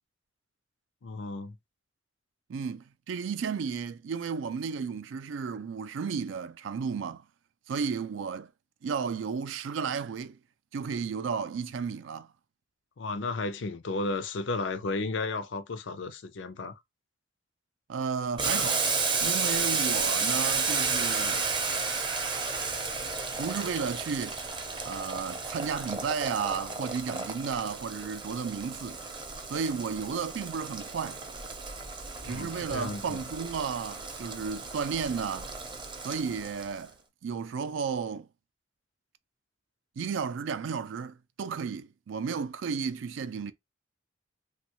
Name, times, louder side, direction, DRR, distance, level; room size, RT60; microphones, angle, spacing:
voice 1, 1.0-1.6 13.0-16.8 32.2-33.2, left 3 dB, 75° left, 0.5 m, -33 dB
voice 2, 2.5-7.3 7.7-8.5 8.8-10.4 10.7-12.3 17.9-18.9 19.2-21.5 23.4-24.4 24.8-29.0 29.5-31.2 32.2-35.5 36.0-36.9 37.2-38.3 40.0-43.5, right 6 dB, 90° right, 0.4 m, -33 dB
Boiling, 18.4-36.8, right 4 dB, 25° right, 0.5 m, -32 dB
3.0 x 2.2 x 2.9 m
head